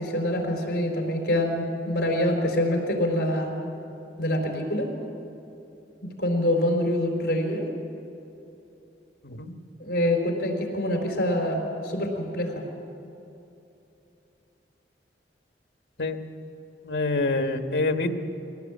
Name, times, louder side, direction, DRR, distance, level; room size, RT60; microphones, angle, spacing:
voice 1, 0.0-3.5 4.2-4.9 6.2-7.6 9.8-12.6, left 1 dB, 60° left, 2 dB, 4.3 m, -25 dB
voice 2, 16.8-18.1, left 2 dB, 75° left, 6 dB, 1.5 m, -26 dB
22.5 x 17.5 x 8.6 m, 2.9 s
head